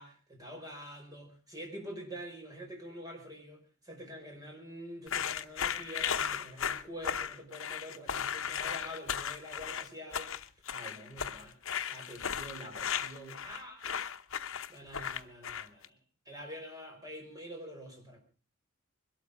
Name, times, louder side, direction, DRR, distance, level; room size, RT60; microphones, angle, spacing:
voice 1, 0.0-11.6 11.9-13.8 14.7-16.0 16.3-18.2, equal, 15° right, 2 dB, 5.4 m, -46 dB
sound 1, 5.1-15.8, left 8 dB, 65° left, 0.9 m, -36 dB
22.0 x 13.0 x 5.0 m, 0.38 s
head